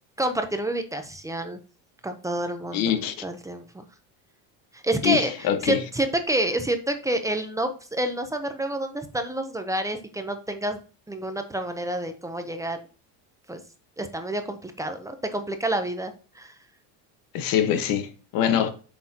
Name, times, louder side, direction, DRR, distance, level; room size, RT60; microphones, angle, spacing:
voice 1, 0.2-1.6 2.0-3.6 4.7-10.8 11.1-12.8 13.5-13.6 14.0-16.5, right 1 dB, 10° right, 0.7 m, -28 dB
voice 2, 2.7-3.1 5.0-5.8 17.3-18.7, left 9 dB, 55° left, 1.4 m, -24 dB
7.7 x 6.6 x 2.9 m
cardioid pair, 140°, 40 cm